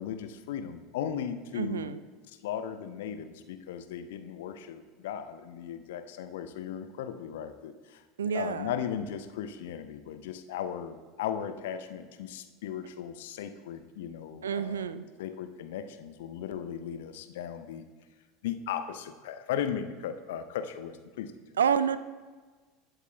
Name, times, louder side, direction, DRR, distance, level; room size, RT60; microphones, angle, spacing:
voice 1, 0.0-2.0 2.3-14.9 15.2-17.9 18.4-21.3, left 9 dB, 60° left, 9 dB, 0.7 m, -37 dB
voice 2, 1.5-2.0 8.2-8.7 14.4-15.1 21.6-22.0, right 7 dB, 70° right, 14 dB, 0.4 m, -28 dB
20.0 x 8.0 x 2.3 m, 1.4 s
figure-of-eight pair, 75°, 0 cm